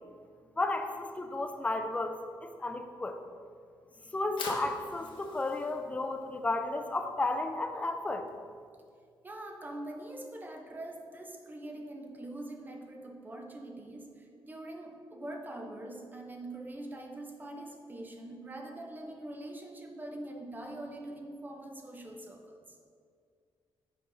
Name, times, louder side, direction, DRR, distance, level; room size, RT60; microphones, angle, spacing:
voice 1, 0.6-3.2 4.1-8.3, left 2 dB, 15° left, 6 dB, 0.5 m, -33 dB
Fire, 4.3-10.3, left 4 dB, 70° left, 1.0 m, -47 dB
voice 2, 9.2-22.8, right 1 dB, 20° right, 2 dB, 0.8 m, -43 dB
6.3 x 4.4 x 5.4 m, 2.2 s
cardioid pair, 130°, 9 cm